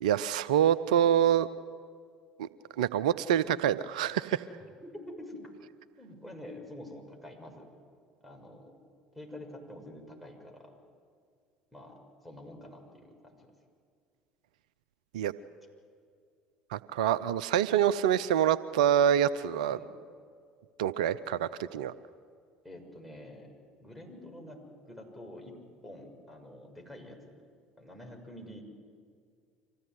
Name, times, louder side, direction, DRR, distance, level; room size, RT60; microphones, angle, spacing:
voice 1, 0.0-1.5 2.4-2.5 2.8-4.4 15.1-15.3 16.7-19.8 20.8-21.9, right 10 dB, 80° right, 15 dB, 0.6 m, -26 dB
voice 2, 4.8-5.5 6.0-7.7 8.2-8.8 9.1-10.8 11.7-12.0 12.2-13.5 19.7-19.9 22.6-23.5 23.8-25.6 25.8-27.4 27.8-28.6, left 1 dB, ahead, 3 dB, 6.7 m, -47 dB
25.5 x 16.0 x 9.6 m, 2.1 s
hypercardioid pair, 65°, 4 cm